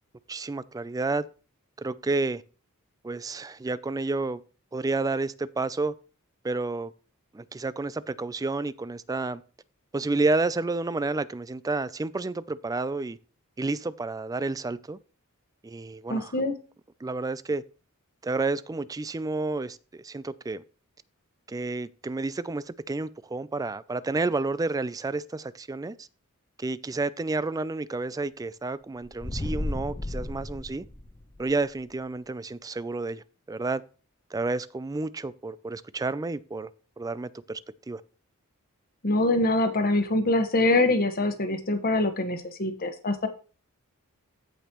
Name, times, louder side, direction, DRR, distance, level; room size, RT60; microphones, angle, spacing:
voice 1, 0.3-1.3 1.8-2.4 3.0-4.4 4.7-5.9 6.4-6.9 7.3-9.4 9.9-13.2 13.6-15.0 15.6-16.3 17.0-17.6 18.2-20.6 21.5-26.1 26.6-30.8 31.4-33.8 34.3-36.7 37.0-37.6 37.9-38.0, right 3 dB, 15° right, 0.3 m, -30 dB
voice 2, 16.1-16.5 39.0-43.3, left 2 dB, 45° left, 1.2 m, -24 dB
sound 1, 29.0-31.5, left 1 dB, 20° left, 0.8 m, -33 dB
15.0 x 5.1 x 3.0 m
head